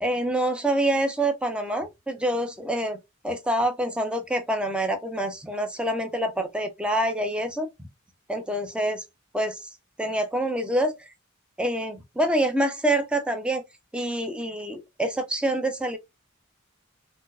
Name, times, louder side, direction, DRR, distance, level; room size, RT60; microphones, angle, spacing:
voice 1, 0.0-3.0 3.2-7.7 8.3-9.0 9.3-9.6 10.0-10.9 11.6-13.6 13.9-16.0, right 1 dB, 5° right, 0.5 m, -26 dB
4.3 x 2.0 x 2.3 m
head